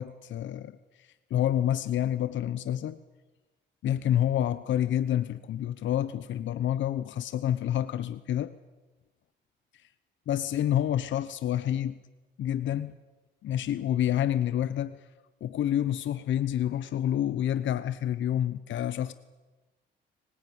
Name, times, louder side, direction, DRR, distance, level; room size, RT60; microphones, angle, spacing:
voice 1, 0.0-3.0 3.8-8.5 10.3-12.0 12.4-12.9 13.4-15.0 15.4-19.1, left 11 dB, 70° left, 14 dB, 1.0 m, -28 dB
24.0 x 20.0 x 9.6 m, 1.2 s
cardioid pair, 90°, 20 cm